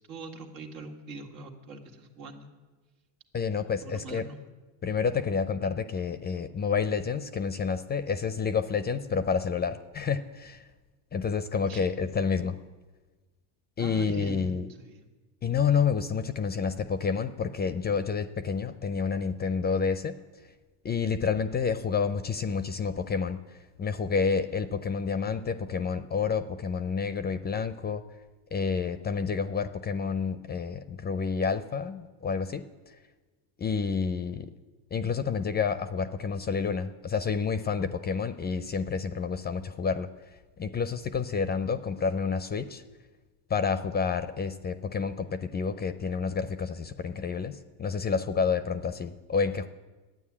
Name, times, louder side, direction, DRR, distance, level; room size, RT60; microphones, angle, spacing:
voice 1, 0.1-2.5 3.8-4.4 11.7-11.8 13.8-15.1, right 3 dB, 85° right, 2 dB, 2.0 m, -43 dB
voice 2, 3.3-4.3 4.8-10.7 11.1-12.6 13.8-14.7 15.4-20.2 20.8-23.4 23.8-28.0 28.5-32.6 33.6-34.5 34.9-40.1 40.6-42.8 43.5-49.7, left 5 dB, 20° left, 12 dB, 0.4 m, -29 dB
11.5 x 9.2 x 8.5 m, 1.2 s
supercardioid pair, 105°, 50 cm